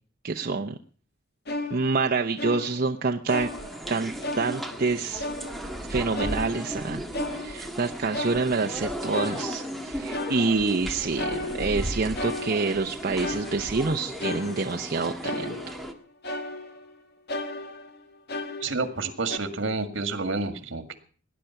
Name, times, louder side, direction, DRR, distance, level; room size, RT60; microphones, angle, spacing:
voice 1, 0.2-0.8 1.7-3.5 3.9-4.1 4.4-5.2 5.9-7.0 7.3-15.8, right 4 dB, 50° right, 4 dB, 0.7 m, -27 dB
sound 1, 1.5-2.9 3.3-4.9 5.2-5.8 6.1-7.8 8.1-8.9 9.1-9.8 10.1-10.8 11.1-12.9 13.2-13.9 14.2-14.9 15.2-16.0 16.2-17.0 17.3-19.0 19.3-19.4, left 2 dB, 55° left, 1.7 m, -35 dB
sound 2, 3.3-15.9, equal, ahead, 1.6 m, -36 dB
voice 2, 18.6-21.0, right 3 dB, 70° right, 8 dB, 2.0 m, -29 dB
19.0 x 10.5 x 5.8 m, 0.42 s
head